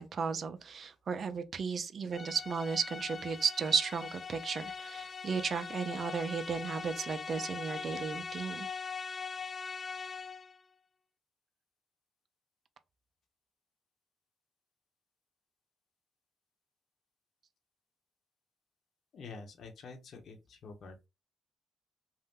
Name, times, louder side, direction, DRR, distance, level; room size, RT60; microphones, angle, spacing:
voice 1, 0.0-8.7, right 5 dB, 50° right, 0.5 m, -34 dB
sound 1, 2.1-10.6, left 5 dB, 45° left, 0.3 m, -42 dB
voice 2, 19.1-21.1, left 4 dB, 65° left, 0.9 m, -48 dB
2.7 x 2.1 x 3.5 m
cardioid pair, 75°, 0 cm